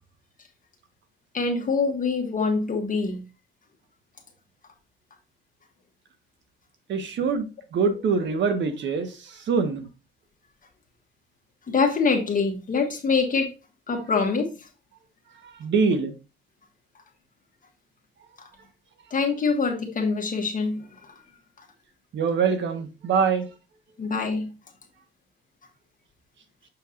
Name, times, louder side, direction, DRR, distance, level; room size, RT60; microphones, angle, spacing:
voice 1, 1.3-3.2 11.7-13.5 13.9-14.5 19.1-20.8 24.0-24.5, left 4 dB, 45° left, 1.5 m, -24 dB
voice 2, 6.9-9.8 15.4-16.1 22.1-23.5, right 5 dB, 70° right, 1.3 m, -24 dB
6.9 x 5.9 x 2.5 m
cardioid pair, 90°, 20 cm